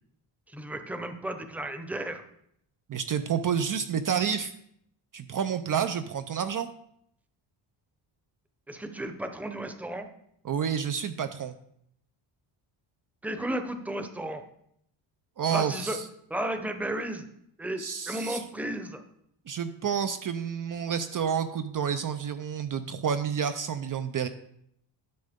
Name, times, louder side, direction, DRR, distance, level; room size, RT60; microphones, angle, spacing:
voice 1, 0.5-2.2 8.7-10.1 13.2-14.4 15.5-16.0 16.3-17.3 17.6-19.0, right 1 dB, 5° right, 7 dB, 0.8 m, -33 dB
voice 2, 2.9-4.5 5.1-6.7 10.4-11.6 15.4-16.0 17.8-18.4 19.5-24.3, right 7 dB, 40° right, 10 dB, 0.6 m, -29 dB
11.5 x 6.4 x 3.6 m, 0.72 s
cardioid pair, 110°, 48 cm